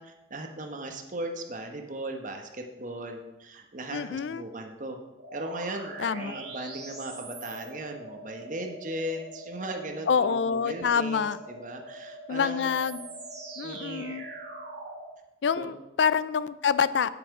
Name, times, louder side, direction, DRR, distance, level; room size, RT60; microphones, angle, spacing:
voice 1, 0.0-5.0 5.3-12.8 13.6-14.2 15.6-15.8, right 1 dB, 45° right, 4 dB, 1.1 m, -37 dB
voice 2, 3.9-4.4 6.0-6.3 10.1-11.4 12.3-13.1 13.6-14.2 15.4-17.1, left 6 dB, 75° left, 16 dB, 0.4 m, -26 dB
sound 1, 5.2-15.1, right 2 dB, 60° right, 2.8 m, -43 dB
9.1 x 8.6 x 4.8 m, 1.0 s
head